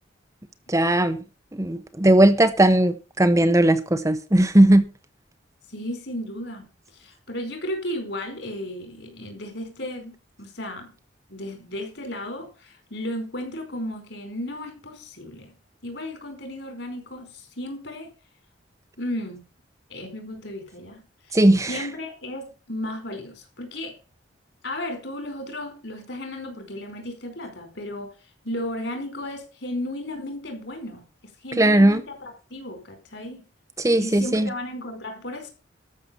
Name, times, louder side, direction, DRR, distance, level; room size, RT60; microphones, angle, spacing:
voice 1, 0.7-1.2 1.5-4.9 21.3-21.9 31.6-32.0 33.8-34.5, right 1 dB, 15° right, 0.8 m, -18 dB
voice 2, 5.7-10.9 11.3-15.5 15.8-18.1 19.0-19.4 19.9-21.4 21.7-24.0 24.6-28.1 28.4-31.0 31.4-33.5 34.0-35.5, left 1 dB, 60° left, 4.9 m, -34 dB
13.0 x 6.7 x 7.0 m
head